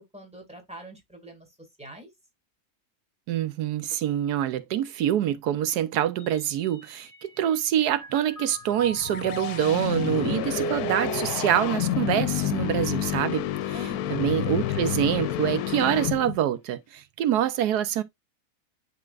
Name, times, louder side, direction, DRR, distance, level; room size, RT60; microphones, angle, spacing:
voice 1, 0.1-2.1 13.7-14.2, equal, 5° right, 2.0 m, -44 dB
voice 2, 3.3-13.4 14.1-18.0, right 11 dB, 90° right, 1.2 m, -25 dB
Mallet percussion, 6.2-7.6 7.9-13.3, right 3 dB, 10° left, 1.7 m, -38 dB
sound 1, 8.7-16.5, left 12 dB, 75° left, 1.0 m, -29 dB
10.5 x 3.7 x 2.4 m
omnidirectional pair, 1.7 m